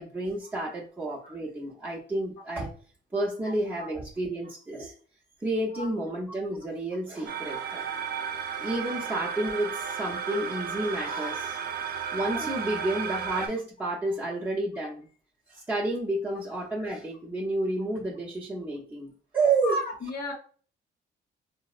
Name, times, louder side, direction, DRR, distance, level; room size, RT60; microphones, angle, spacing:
voice 1, 0.0-2.7 3.1-4.9 5.4-7.9 8.3-11.6 12.1-15.1 15.5-19.8, right 2 dB, 10° right, -6 dB, 0.7 m, -30 dB
sound 1, 7.3-13.5, right 7 dB, 55° right, 0.4 m, -33 dB
voice 2, 19.6-20.3, left 1 dB, 50° left, -1 dB, 0.7 m, -32 dB
3.9 x 2.0 x 2.4 m, 0.43 s
cardioid pair, 90°, 20 cm